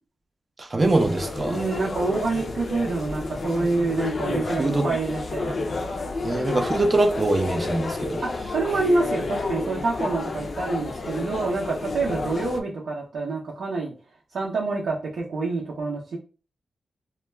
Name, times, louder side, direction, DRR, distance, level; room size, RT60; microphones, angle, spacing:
voice 1, 0.6-1.6 4.3-4.9 6.2-8.2, right 2 dB, 30° right, 0.4 m, -23 dB
sound 1, 0.8-12.6, left 3 dB, 45° left, 0.4 m, -31 dB
voice 2, 1.5-5.6 8.2-13.9 14.3-16.2, right 3 dB, 75° right, 0.6 m, -27 dB
2.2 x 2.1 x 3.2 m
wide cardioid pair, 125°, 0 cm